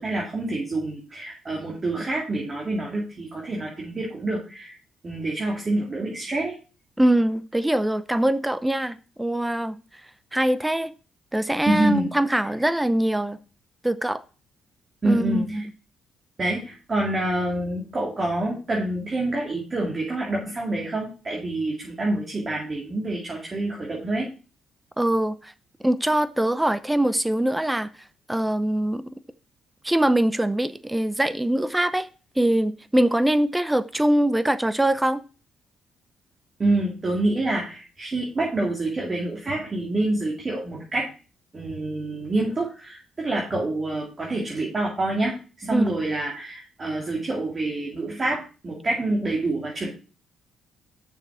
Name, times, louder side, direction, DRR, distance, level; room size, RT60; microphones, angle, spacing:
voice 1, 0.0-4.8 5.0-6.5 11.7-12.1 15.0-15.6 16.4-24.3 36.6-41.1 41.5-49.9, right 2 dB, 35° right, 2.4 m, -27 dB
voice 2, 7.0-9.8 10.3-10.9 11.3-13.4 13.8-14.2 15.0-15.6 25.0-25.5 25.8-27.9 28.3-29.0 29.8-32.1 32.4-35.2 45.7-45.9, right 1 dB, 10° right, 0.7 m, -23 dB
6.7 x 6.2 x 4.9 m
cardioid pair, 90°, 0 cm